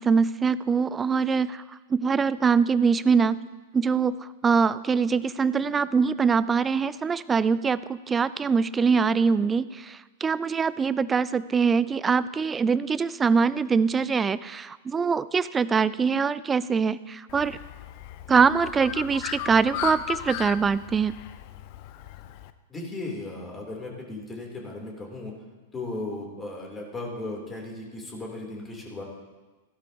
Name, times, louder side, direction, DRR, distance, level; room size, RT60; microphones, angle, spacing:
voice 1, 0.0-1.6 1.9-3.4 3.7-17.6 18.3-21.1, right 5 dB, 15° right, 18 dB, 0.4 m, -23 dB
Bird, 17.3-22.5, left 13 dB, 45° left, 0.6 m, -37 dB
voice 2, 22.7-25.3 25.7-29.0, left 2 dB, 15° left, -1 dB, 3.4 m, -36 dB
16.5 x 12.0 x 2.9 m, 1.3 s
figure-of-eight pair, 100°, 0 cm